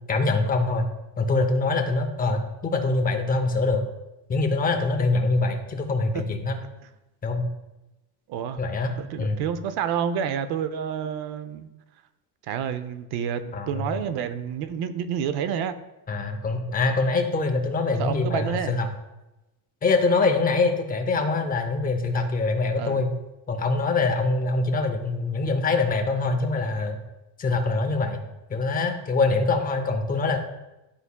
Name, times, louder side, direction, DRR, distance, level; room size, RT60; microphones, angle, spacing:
voice 1, 0.1-0.9 1.2-3.8 4.3-6.5 7.2-7.5 8.6-8.9 9.2-9.4 13.5-13.8 16.1-18.9 19.8-23.1 23.5-27.0 27.4-28.2 28.5-30.4, left 3 dB, 20° left, 5 dB, 0.6 m, -24 dB
voice 2, 8.3-11.7 12.5-15.8 18.0-18.8 22.8-23.1, right 8 dB, 60° right, 11 dB, 0.6 m, -29 dB
11.5 x 4.1 x 2.2 m, 0.99 s
cardioid pair, 150°, 43 cm